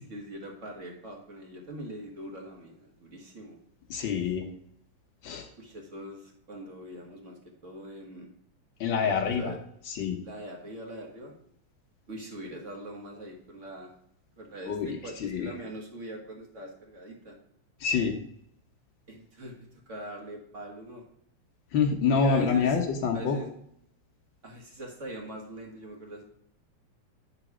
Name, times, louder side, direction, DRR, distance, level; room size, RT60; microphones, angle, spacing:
voice 1, 0.1-3.6 5.6-8.3 9.0-9.6 10.2-11.3 12.1-13.9 14.4-17.4 19.1-21.0 22.2-22.8 23.1-23.5 24.4-26.2, right 1 dB, 35° right, 1 dB, 1.4 m, -42 dB
voice 2, 3.9-4.5 5.2-5.5 8.8-9.5 9.9-10.2 14.7-15.5 17.8-18.2 21.7-23.4, left 5 dB, 80° left, 2 dB, 1.0 m, -26 dB
10.5 x 4.0 x 6.0 m, 0.69 s
omnidirectional pair, 3.4 m